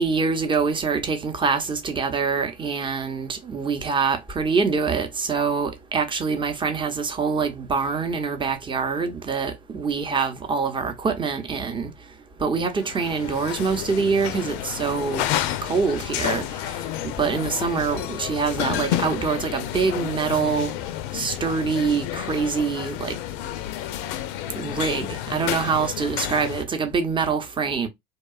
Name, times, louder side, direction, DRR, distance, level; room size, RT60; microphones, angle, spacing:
voice 1, 0.0-11.9 12.4-15.3 15.6-20.7 21.1-23.1 24.6-27.9, right 5 dB, 15° right, 0.6 m, -25 dB
sound 1, 12.8-26.6, left 12 dB, 60° left, 0.4 m, -30 dB
2.8 x 2.2 x 2.3 m
hypercardioid pair, 75°, 30 cm